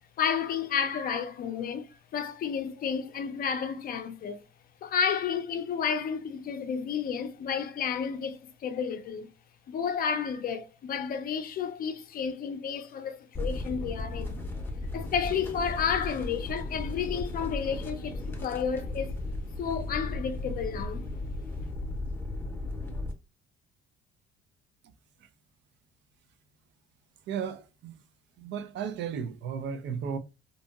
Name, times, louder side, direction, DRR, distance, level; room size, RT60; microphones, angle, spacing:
voice 1, 0.2-4.4 4.8-9.3 9.7-14.4 14.9-19.2 19.6-21.1, left 7 dB, 45° left, 0.5 m, -31 dB
sound 1, 13.3-23.1, left 2 dB, 10° left, 0.7 m, -35 dB
voice 2, 27.3-27.9 28.4-30.2, right 7 dB, 60° right, 0.4 m, -34 dB
2.7 x 2.7 x 2.3 m
cardioid pair, 120°, 21 cm